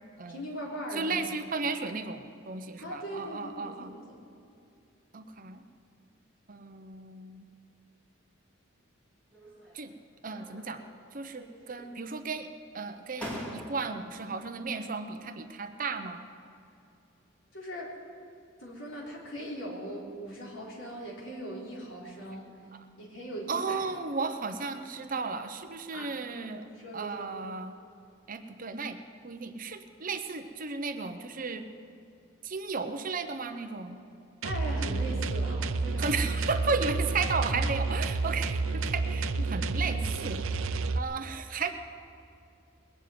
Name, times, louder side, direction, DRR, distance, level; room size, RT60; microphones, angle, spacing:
voice 1, 0.3-1.3 1.6-1.7 2.8-4.2 17.5-17.9 18.6-22.5 23.0-23.8 25.9-26.1 26.7-27.3 34.4-36.2 39.4-39.9, equal, 70° left, -3 dB, 3.7 m, -40 dB
voice 2, 0.9-3.9 5.1-5.6 6.5-7.5 9.7-9.9 10.2-10.8 11.1-12.5 12.7-16.2 23.5-26.7 26.9-27.7 28.3-29.0 29.2-31.7 32.4-34.0 36.0-40.4 40.9-41.7, right 4 dB, 40° right, 8 dB, 0.8 m, -34 dB
sound 1, 9.3-9.9 10.3-11.1 11.3-12.1 12.7-12.8 13.2-14.1, equal, 5° left, 2.5 m, -43 dB
sound 2, 34.4-41.0, right 3 dB, 85° right, 0.6 m, -30 dB
21.0 x 7.4 x 9.3 m, 2.6 s
head